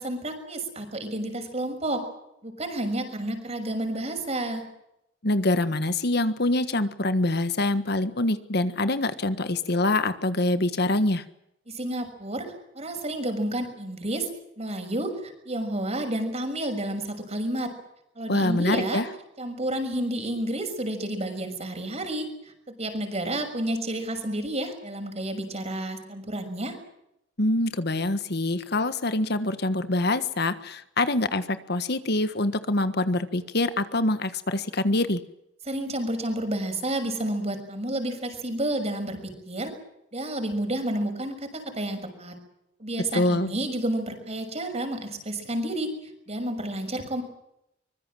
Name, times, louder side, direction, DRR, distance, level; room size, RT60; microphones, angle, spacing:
voice 1, 0.0-2.0 2.4-4.6 11.7-14.3 14.6-17.7 18.2-19.0 19.4-22.3 22.8-26.8 35.7-39.7 40.1-42.4 42.8-45.9 46.3-47.2, right 1 dB, 35° right, 5 dB, 6.3 m, -30 dB
voice 2, 5.2-11.2 18.3-19.0 27.4-35.2 43.1-43.5, left 2 dB, 60° left, 11 dB, 1.5 m, -25 dB
24.5 x 22.0 x 7.7 m, 0.81 s
head